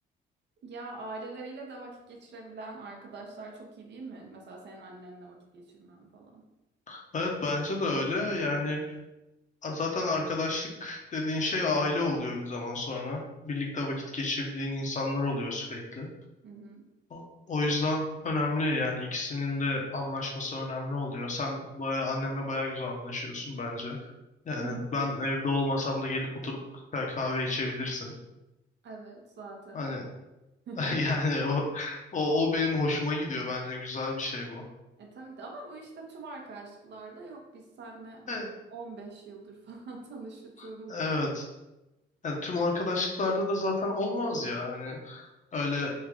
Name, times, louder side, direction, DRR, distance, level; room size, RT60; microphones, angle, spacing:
voice 1, 0.6-6.4 16.4-16.8 24.6-25.0 28.8-29.9 30.7-31.0 35.0-41.0, right 3 dB, 60° right, 0 dB, 0.8 m, -44 dB
voice 2, 6.9-9.0 9.6-16.1 17.1-17.2 17.5-24.1 24.4-26.6 26.9-28.1 29.7-30.0 30.8-34.6 38.3-38.5 40.6-41.5 42.2-45.9, left 2 dB, 40° left, 0 dB, 0.8 m, -30 dB
3.2 x 2.4 x 3.6 m, 0.98 s
cardioid pair, 90°, 20 cm